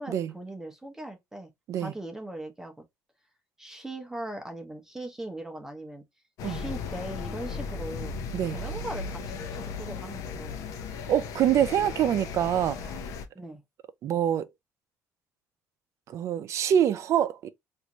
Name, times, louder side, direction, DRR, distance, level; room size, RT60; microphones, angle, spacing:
voice 1, 0.0-1.5 1.8-2.8 3.6-6.0 6.4-8.2 8.4-10.6 13.3-13.6, right 1 dB, 10° right, 0.7 m, -39 dB
sound 1, 6.4-13.3, left 5 dB, 70° left, 0.7 m, -36 dB
voice 2, 11.1-12.9 14.0-14.5 16.1-17.5, right 10 dB, 60° right, 0.5 m, -25 dB
3.2 x 2.6 x 2.9 m
cardioid pair, 115°, 6 cm